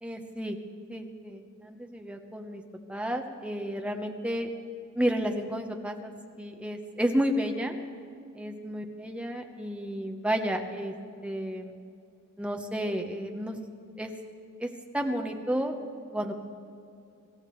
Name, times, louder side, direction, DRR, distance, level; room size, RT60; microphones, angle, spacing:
voice 1, 0.0-0.6 0.9-2.6 2.9-4.5 4.9-6.1 6.4-7.7 8.3-10.9 11.2-11.8 12.4-13.6 14.0-14.1 14.6-14.7 14.9-15.8 16.1-16.3, equal, 5° right, 3 dB, 1.0 m, -31 dB
25.5 x 14.5 x 3.2 m, 2.4 s
head